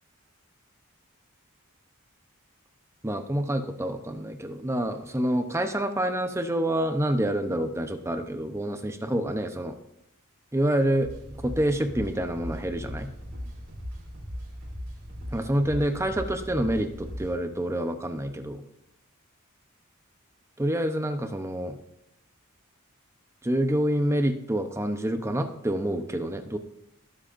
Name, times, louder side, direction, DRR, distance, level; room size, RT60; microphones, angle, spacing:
voice 1, 3.0-9.8 10.5-11.1 11.4-13.1 15.3-18.6 20.6-21.8 23.4-26.6, right 1 dB, 15° right, 7 dB, 0.7 m, -27 dB
sound 1, 11.0-17.3, equal, 45° right, 3.3 m, -38 dB
20.5 x 7.7 x 2.6 m, 0.82 s
head